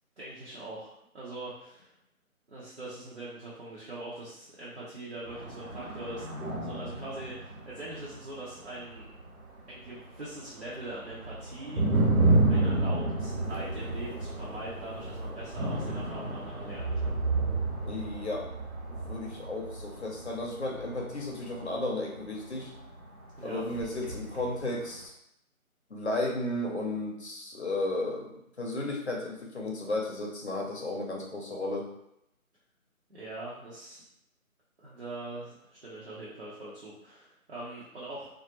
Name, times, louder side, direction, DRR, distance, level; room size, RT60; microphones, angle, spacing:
voice 1, 0.2-1.9 2.5-9.1 9.7-11.8 12.5-17.2 23.4-23.6 33.1-34.0 34.8-38.3, right 2 dB, 50° right, -8 dB, 0.6 m, -42 dB
sound 1, 5.3-10.2 10.5-23.2 23.6-25.0, right 2 dB, 85° right, 0.8 m, -31 dB
voice 2, 17.8-18.5 18.9-22.7 23.4-25.0 25.9-31.9, left 2 dB, 50° left, -1 dB, 0.6 m, -34 dB
2.2 x 2.0 x 2.8 m, 0.79 s
figure-of-eight pair, 160°, 43 cm